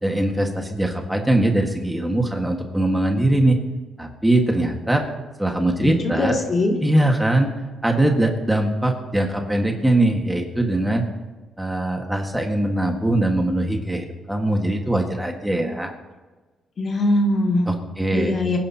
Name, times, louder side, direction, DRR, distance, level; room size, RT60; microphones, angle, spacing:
voice 1, 0.0-3.6 4.0-5.0 5.4-6.4 6.8-7.5 7.8-11.0 11.6-15.9 17.7-18.3, right 1 dB, 5° right, 2 dB, 1.7 m, -21 dB
voice 2, 5.8-6.8 16.8-17.7 18.1-18.6, left 1 dB, 45° left, 1 dB, 2.5 m, -21 dB
24.5 x 10.5 x 2.9 m, 1.2 s
cardioid pair, 90°, 0 cm